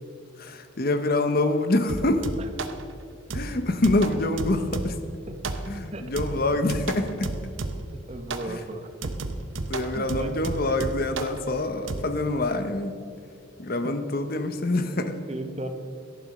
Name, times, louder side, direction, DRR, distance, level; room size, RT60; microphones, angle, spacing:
voice 1, 0.4-2.2 3.3-5.0 5.7-7.3 8.5-8.6 9.7-13.0 13.6-15.2, left 2 dB, 45° left, 9 dB, 0.8 m, -26 dB
sound 1, 1.9-2.8 3.3-5.1 5.4-5.9 6.2-8.0 8.3-8.5 9.0-11.4 11.9-12.0, right 2 dB, 70° right, 0.9 m, -33 dB
voice 2, 8.1-9.1 9.9-10.3 15.3-15.7, right 2 dB, 30° right, 7 dB, 0.9 m, -35 dB
11.5 x 11.0 x 6.5 m, 2.4 s
head